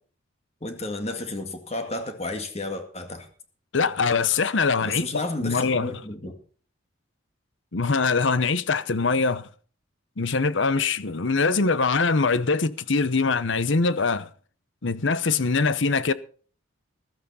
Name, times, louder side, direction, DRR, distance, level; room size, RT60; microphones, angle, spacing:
voice 1, 0.6-3.3 4.8-6.3, left 2 dB, 30° left, 2.0 m, -32 dB
voice 2, 3.7-5.9 7.7-9.5 10.2-14.3 14.8-16.1, left 4 dB, 65° left, 0.9 m, -23 dB
15.0 x 13.5 x 4.2 m
head